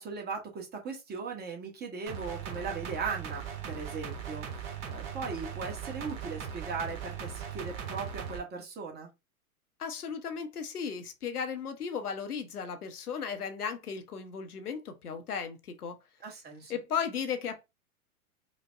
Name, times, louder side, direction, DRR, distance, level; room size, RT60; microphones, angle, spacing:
voice 1, 0.0-9.1 16.2-16.7, right 5 dB, 20° right, 1.1 m, -38 dB
sound 1, 2.1-8.4, right 8 dB, 45° right, 1.2 m, -39 dB
voice 2, 9.8-16.0 16.7-17.6, left 6 dB, 80° left, 0.9 m, -35 dB
5.0 x 2.1 x 2.5 m
figure-of-eight pair, 100°, 44 cm